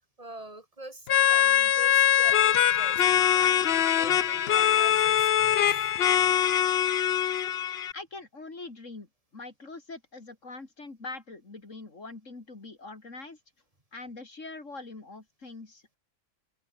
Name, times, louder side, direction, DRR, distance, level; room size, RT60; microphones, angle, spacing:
voice 1, 0.2-6.6 7.1-7.3, right 2 dB, 25° right, 2.8 m, -45 dB
sound 1, 1.1-7.9, left 10 dB, 55° left, 0.9 m, -23 dB
voice 2, 7.9-9.1 9.3-13.4 13.9-16.0, left 3 dB, 75° left, 3.6 m, -43 dB
open air
omnidirectional pair, 1.3 m